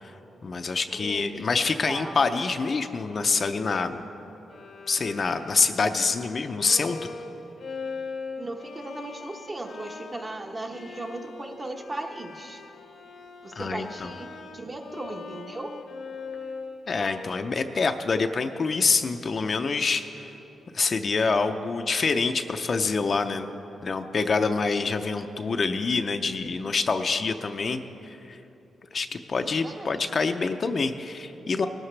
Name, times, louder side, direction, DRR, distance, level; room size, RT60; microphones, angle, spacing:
voice 1, 0.4-4.0 4.9-7.0 13.5-14.1 16.9-20.1 20.7-23.5 23.8-28.4 28.9-31.7, left 4 dB, 45° left, 7 dB, 0.6 m, -26 dB
voice 2, 1.0-2.2 8.4-12.6 13.4-14.3 14.5-15.7 29.3-29.9, right 2 dB, 25° right, 3 dB, 1.1 m, -37 dB
Bowed string instrument, 4.5-20.6, left 4 dB, 65° left, 0.9 m, -42 dB
19.0 x 12.5 x 3.3 m, 3.0 s
cardioid pair, 85°, 0 cm